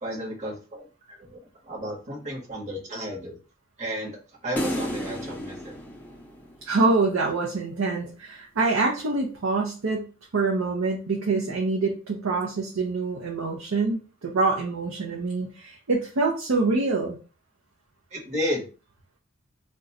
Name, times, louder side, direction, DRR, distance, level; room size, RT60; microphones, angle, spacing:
voice 1, 0.0-3.3 3.8-4.2 4.4-5.8 18.1-18.7, equal, 35° right, -3 dB, 1.0 m, -33 dB
sound 1, 4.6-7.0, equal, 10° left, 0.5 m, -32 dB
voice 2, 6.6-17.2, right 3 dB, 85° right, 0 dB, 0.6 m, -25 dB
2.5 x 2.2 x 4.0 m, 0.35 s
head